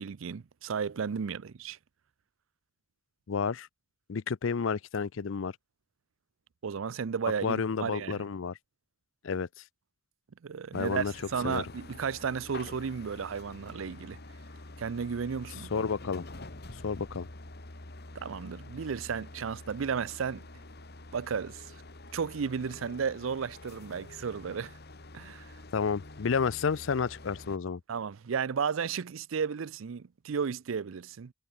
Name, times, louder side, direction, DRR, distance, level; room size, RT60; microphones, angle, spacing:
voice 1, 0.0-1.8 6.6-8.2 10.4-14.2 14.8-15.9 18.1-20.4 21.1-21.7 22.1-24.8 25.1-25.5 27.9-31.3, right 6 dB, 75° right, 0.5 m, -33 dB
voice 2, 3.3-3.7 4.1-5.5 7.4-8.6 9.2-9.6 10.7-11.1 11.4-11.6 15.7-16.2 16.8-17.3 25.7-27.8, left 5 dB, 70° left, 0.5 m, -31 dB
sound 1, 10.7-27.6, left 2 dB, 55° left, 2.1 m, -47 dB
head